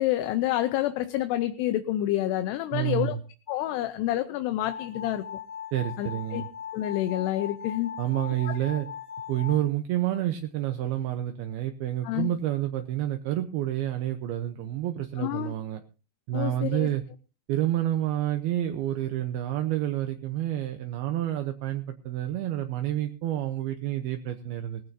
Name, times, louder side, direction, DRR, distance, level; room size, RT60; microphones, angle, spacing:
voice 1, 0.0-3.2 3.5-5.2 6.0-6.4 6.7-7.9 12.0-12.3 15.2-15.5 16.3-16.9, left 14 dB, 80° left, 9 dB, 2.8 m, -28 dB
voice 2, 2.7-3.2 5.7-6.5 8.0-8.9 9.3-15.8 16.3-17.0 17.5-24.8, right 12 dB, 75° right, 6 dB, 2.7 m, -29 dB
sound 1, 4.6-9.6, left 8 dB, 60° left, 3.7 m, -39 dB
20.0 x 15.0 x 2.7 m, 0.35 s
omnidirectional pair, 4.9 m